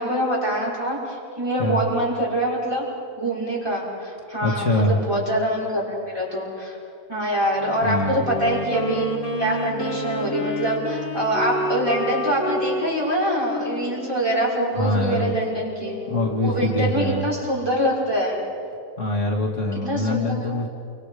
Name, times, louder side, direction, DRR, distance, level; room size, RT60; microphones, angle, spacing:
voice 1, 0.0-2.8 3.2-6.8 7.1-9.1 9.4-16.0 16.4-18.4 19.7-20.5, right 1 dB, 15° right, -5 dB, 5.8 m, -24 dB
voice 2, 4.4-5.0 7.8-8.2 14.8-15.5 16.1-17.3 19.0-20.7, left 1 dB, 55° left, 0 dB, 2.3 m, -24 dB
Bowed string instrument, 7.4-13.0, right 1 dB, 85° left, 5.4 m, -38 dB
Wind instrument woodwind instrument, 8.1-16.8, left 1 dB, 35° left, 1.7 m, -30 dB
29.0 x 25.5 x 5.1 m, 2.5 s
omnidirectional pair, 1.6 m